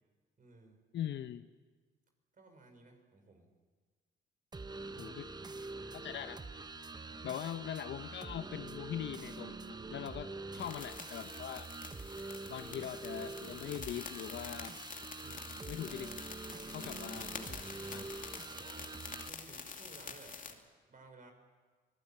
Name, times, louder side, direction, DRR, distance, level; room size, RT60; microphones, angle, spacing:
voice 1, 0.4-0.8 2.4-3.5 4.9-5.2 7.0-7.3 15.2-15.7 16.5-17.4 18.5-19.0 19.2-20.6 20.9-21.3, right 3 dB, 45° right, 5 dB, 5.5 m, -58 dB
voice 2, 0.9-1.5 5.0-5.3 5.9-6.4 7.2-11.7 12.0-14.8 15.7-16.1 16.7-18.1, left 10 dB, 65° left, 10 dB, 0.9 m, -42 dB
sound 1, 4.5-19.3, right 3 dB, 20° right, 1.0 m, -45 dB
sound 2, 10.6-20.5, left 5 dB, 40° left, 2.6 m, -47 dB
25.5 x 17.5 x 8.8 m, 1.4 s
cardioid pair, 90°, 20 cm